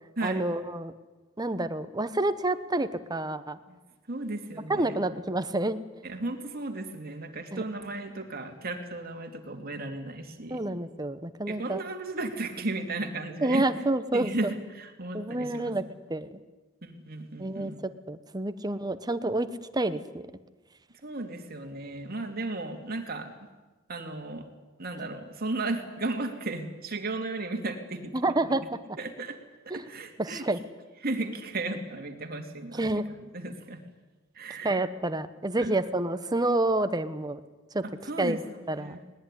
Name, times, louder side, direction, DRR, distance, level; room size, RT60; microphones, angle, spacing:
voice 1, 0.2-0.9 1.4-3.6 4.7-5.8 7.5-7.6 10.5-11.8 13.4-14.3 15.1-15.8 16.1-16.4 17.4-19.5 19.7-20.2 28.1-28.8 29.7-29.9 30.2-30.6 32.7-33.1 34.6-37.4 37.7-37.8 38.2-38.4 38.7-39.0, right 2 dB, 20° right, 11 dB, 1.0 m, -28 dB
voice 2, 4.1-5.0 6.0-10.6 11.5-13.7 14.1-15.7 16.8-17.7 21.0-23.3 23.9-24.5 24.8-28.6 29.0-29.4 29.6-30.4 31.0-33.8 34.3-34.8 35.6-35.7 38.0-38.4 38.8-39.0, right 2 dB, 45° right, 4 dB, 2.8 m, -35 dB
20.0 x 19.5 x 10.0 m, 1.2 s
head